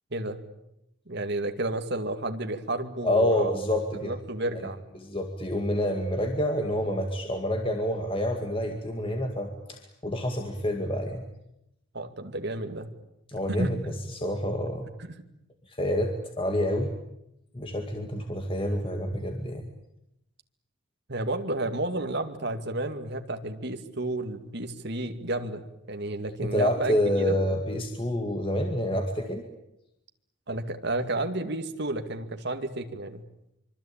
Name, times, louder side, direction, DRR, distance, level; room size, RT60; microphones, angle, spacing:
voice 1, 0.1-0.4 1.1-3.5 4.0-4.8 11.9-12.9 13.5-13.7 15.0-15.2 19.4-19.5 21.1-27.4 30.5-33.2, right 2 dB, 55° right, 6 dB, 2.3 m, -31 dB
voice 2, 3.0-4.1 4.5-4.7 5.0-11.2 13.3-14.9 15.7-16.9 17.5-19.7 26.4-29.4, left 1 dB, 25° left, 3 dB, 2.2 m, -28 dB
25.0 x 25.0 x 8.9 m, 0.85 s
head